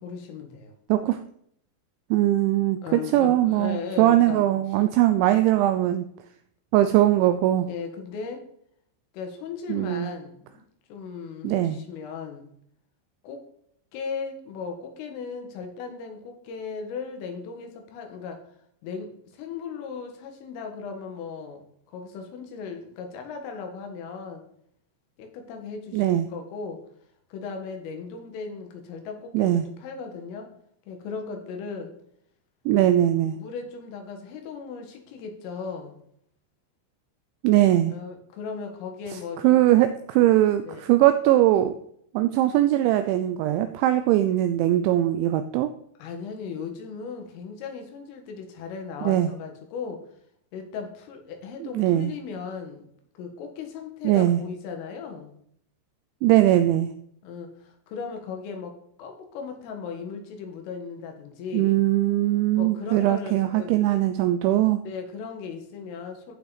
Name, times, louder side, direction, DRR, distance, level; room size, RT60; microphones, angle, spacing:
voice 1, 0.0-0.7 2.8-4.5 7.7-8.4 9.1-10.6 10.9-12.5 13.2-13.4 13.9-18.4 18.8-21.6 21.9-24.4 25.2-26.8 27.3-30.5 30.9-31.9 33.4-35.9 37.9-39.6 40.7-40.9 46.0-50.1 50.5-52.8 53.2-55.3 57.2-61.8 62.6-64.0 64.9-66.4, left 5 dB, 85° left, 4 dB, 4.3 m, -37 dB
voice 2, 2.1-6.1 6.7-7.7 9.7-10.1 11.4-11.8 25.9-26.3 29.3-29.7 32.7-33.4 37.4-37.9 39.4-41.7 42.1-45.7 49.1-49.3 51.6-52.1 54.0-54.4 56.2-56.9 61.5-64.8, right 13 dB, 80° right, 9 dB, 2.7 m, -21 dB
15.0 x 5.8 x 4.1 m, 0.68 s
omnidirectional pair, 5.6 m